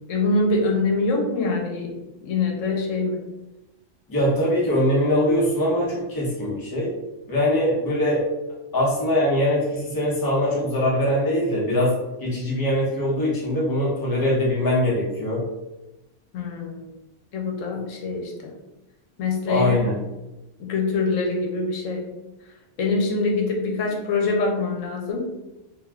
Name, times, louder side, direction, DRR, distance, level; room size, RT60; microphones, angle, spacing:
voice 1, 0.1-1.9 2.2-3.2 16.3-16.8 17.3-18.5 19.2-19.8 20.6-22.0 22.8-25.3, left 3 dB, 85° left, 0 dB, 1.0 m, -24 dB
voice 2, 4.1-6.9 7.3-8.2 8.7-11.9 12.2-15.4 17.7-17.8 19.5-20.0, left 1 dB, 20° left, -5 dB, 0.7 m, -22 dB
2.6 x 2.3 x 3.3 m, 1.0 s
omnidirectional pair, 1.3 m